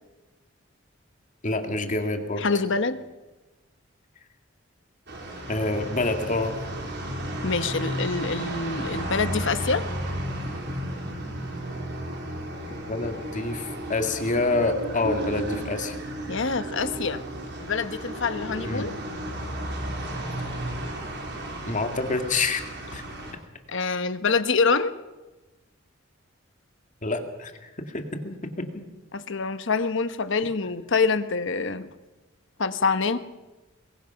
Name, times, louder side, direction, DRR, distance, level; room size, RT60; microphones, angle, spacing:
voice 1, 1.4-2.5 5.5-6.5 12.9-16.0 18.6-18.9 21.7-22.6 22.9-23.0 27.0-28.8, left 2 dB, 40° left, 5 dB, 2.2 m, -27 dB
voice 2, 2.4-3.0 7.4-9.8 16.3-17.2 17.6-18.9 23.7-24.9 29.1-31.9 32.6-33.2, left 4 dB, 60° left, 11 dB, 1.1 m, -25 dB
sound 1, 5.1-23.3, right 1 dB, 55° right, 4.1 m, -33 dB
24.5 x 21.5 x 5.8 m, 1.1 s
head